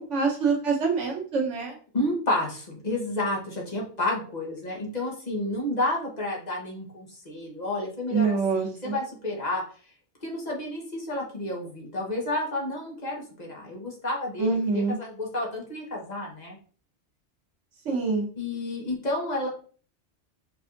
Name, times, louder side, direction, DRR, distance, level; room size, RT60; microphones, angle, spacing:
voice 1, 0.0-1.7 8.1-9.0 14.4-15.0 17.8-18.3, right 4 dB, 85° right, 0 dB, 1.4 m, -25 dB
voice 2, 1.9-9.6 10.2-16.6 18.4-19.5, left 1 dB, 40° left, -2 dB, 1.1 m, -30 dB
4.7 x 3.4 x 2.6 m, 0.42 s
omnidirectional pair, 1.2 m